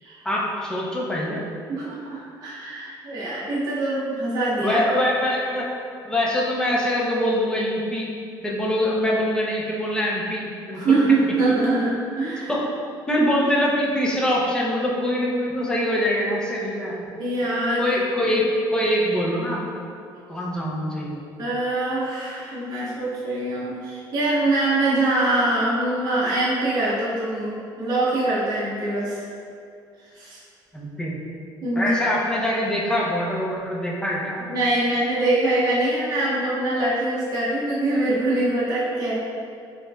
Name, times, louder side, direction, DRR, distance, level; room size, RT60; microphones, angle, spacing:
voice 1, 0.2-1.4 4.6-5.7 6.0-8.1 8.4-11.2 12.5-12.7 13.1-17.1 17.8-19.6 20.3-21.2 30.7-31.1 31.8-34.4, left 1 dB, 10° left, -4 dB, 0.7 m, -24 dB
voice 2, 1.7-4.8 10.7-12.5 17.2-18.0 21.4-29.2 30.1-30.4 31.6-31.9 34.5-39.2, right 2 dB, 45° right, -8 dB, 0.8 m, -23 dB
7.3 x 2.6 x 2.3 m, 2.3 s
cardioid pair, 130°, 9 cm